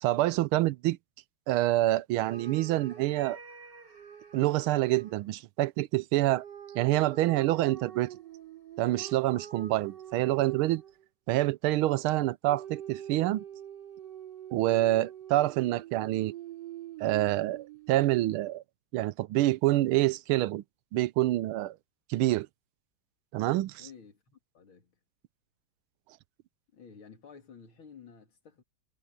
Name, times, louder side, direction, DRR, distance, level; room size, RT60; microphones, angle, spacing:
voice 1, 0.0-1.0 1.5-3.4 4.3-6.4 6.7-8.1 8.8-10.8 11.3-13.4 14.5-16.3 17.0-18.6 18.9-20.6 20.9-21.7 22.1-22.5 23.3-23.9, right 16 dB, 85° right, 1.5 m, -27 dB
sound 1, 2.3-5.2 6.3-11.1 12.5-18.6, right 10 dB, 55° right, 3.7 m, -45 dB
voice 2, 23.8-25.0 26.7-28.6, left 6 dB, 75° left, 3.5 m, -52 dB
omnidirectional pair, 2.3 m